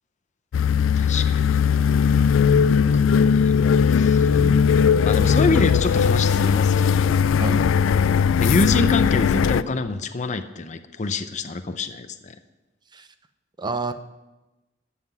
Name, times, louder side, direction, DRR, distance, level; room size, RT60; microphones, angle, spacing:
sound 1, 0.5-9.6, left 6 dB, 85° left, 0.3 m, -18 dB
voice 1, 1.0-1.6 2.5-3.5 3.9-4.3 5.1-7.2 8.4-12.3, left 3 dB, 40° left, 9 dB, 0.6 m, -26 dB
voice 2, 4.3-4.7 7.4-7.7 12.9-13.1 13.6-13.9, right 2 dB, 25° right, 10 dB, 0.6 m, -29 dB
13.0 x 5.9 x 9.0 m, 1.1 s
head